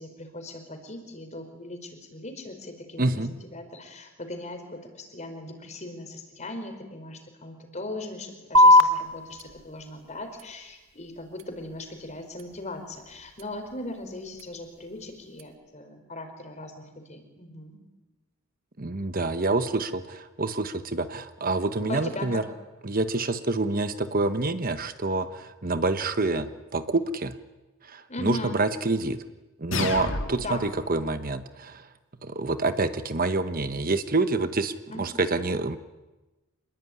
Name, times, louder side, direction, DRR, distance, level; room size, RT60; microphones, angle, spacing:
voice 1, 0.0-17.8 21.9-22.4 28.1-28.7 30.4-30.7 34.9-35.1, left 1 dB, 35° left, 6 dB, 4.9 m, -39 dB
voice 2, 3.0-3.3 18.8-22.4 22.9-27.3 27.9-29.2 29.6-31.8 32.2-34.7 35.0-35.8, right 2 dB, 45° right, 10 dB, 1.1 m, -27 dB
sound 1, 8.5-15.5, left 1 dB, 80° right, 1.7 m, -26 dB
sound 2, 29.7-30.7, left 3 dB, 65° left, 2.5 m, -30 dB
27.0 x 21.0 x 9.7 m, 1.1 s
head